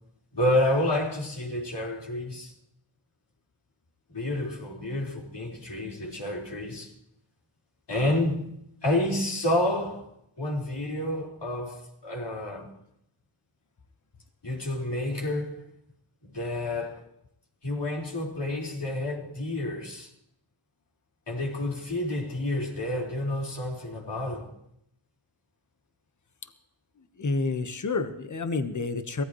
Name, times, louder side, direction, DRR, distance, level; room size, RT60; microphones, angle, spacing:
voice 1, 0.3-2.5 4.1-6.9 7.9-8.4 8.8-10.1 10.4-12.7 14.4-15.6 16.2-17.0 17.6-20.1 21.3-24.5, left 1 dB, 60° left, 4.7 m, -29 dB
voice 2, 27.2-29.2, left 3 dB, 40° left, 1.3 m, -29 dB
23.0 x 15.5 x 3.2 m
cardioid pair, 55°, 47 cm